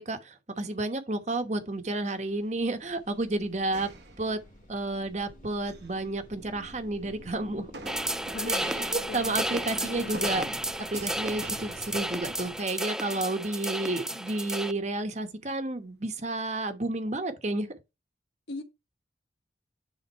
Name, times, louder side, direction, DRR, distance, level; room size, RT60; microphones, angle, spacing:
voice 1, 0.0-3.9 4.2-4.4 4.7-7.7 8.5-10.5 10.7-17.7, right 2 dB, 40° right, 1.1 m, -31 dB
sound 1, 2.0-12.6, equal, 45° left, 1.5 m, -50 dB
sound 2, 3.7-4.8 5.5-6.0 7.7-12.6, right 2 dB, 70° right, 1.0 m, -45 dB
sound 3, 7.9-14.7, right 1 dB, 5° right, 0.3 m, -33 dB
voice 2, 8.2-10.6 18.5-18.6, left 3 dB, 75° left, 1.2 m, -41 dB
9.9 x 3.6 x 4.5 m
head